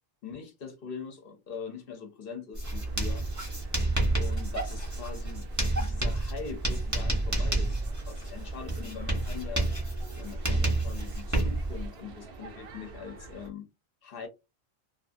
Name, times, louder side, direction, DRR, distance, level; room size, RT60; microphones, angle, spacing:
voice 1, 0.2-3.3 4.1-9.7 10.1-13.7 14.0-14.3, left 6 dB, 55° left, 0.7 m, -42 dB
Writing, 2.5-11.9, right 2 dB, 15° right, 0.9 m, -30 dB
sound 1, 2.6-13.5, right 3 dB, 60° right, 0.7 m, -48 dB
2.7 x 2.5 x 2.5 m
omnidirectional pair, 1.4 m